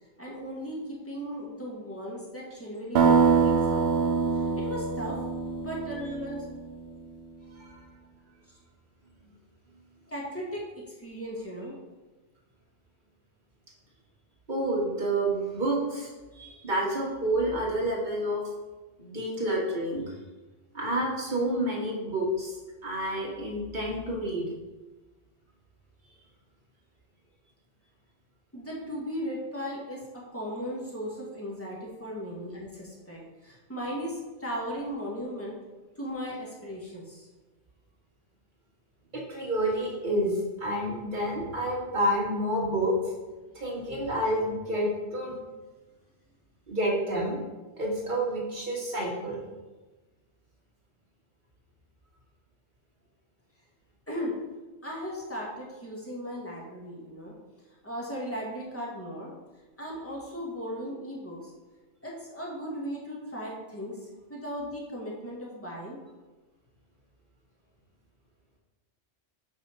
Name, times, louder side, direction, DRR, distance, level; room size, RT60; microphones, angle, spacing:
voice 1, 0.2-5.2 5.6-6.5 10.1-10.6 11.0-11.8 28.5-35.6 36.0-37.3 54.1-54.4 54.8-57.3 57.8-59.3 59.8-61.5 62.0-66.0, equal, 10° left, -4 dB, 1.5 m, -37 dB
sound 1, 3.0-6.7, right 5 dB, 70° right, 0.8 m, -24 dB
voice 2, 14.5-18.4 19.0-20.2 20.7-24.5 39.1-43.0 43.5-45.3 46.7-47.4 47.8-49.4, right 1 dB, 45° right, -4 dB, 1.9 m, -29 dB
5.4 x 4.4 x 5.8 m, 1.2 s
omnidirectional pair, 1.2 m